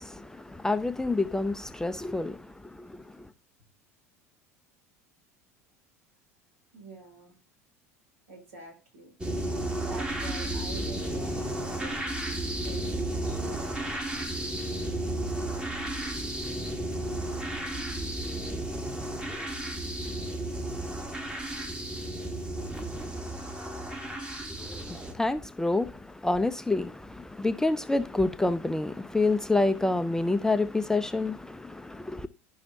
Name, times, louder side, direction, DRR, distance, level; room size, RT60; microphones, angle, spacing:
voice 1, 0.0-3.3 24.6-32.3, left 2 dB, 5° left, 0.4 m, -28 dB
voice 2, 6.7-7.3 8.3-9.1 9.9-14.5, right 2 dB, 70° right, 2.6 m, -47 dB
sound 1, 9.2-25.1, right 1 dB, 10° right, 1.3 m, -33 dB
11.5 x 5.6 x 2.7 m
figure-of-eight pair, 70°, 8 cm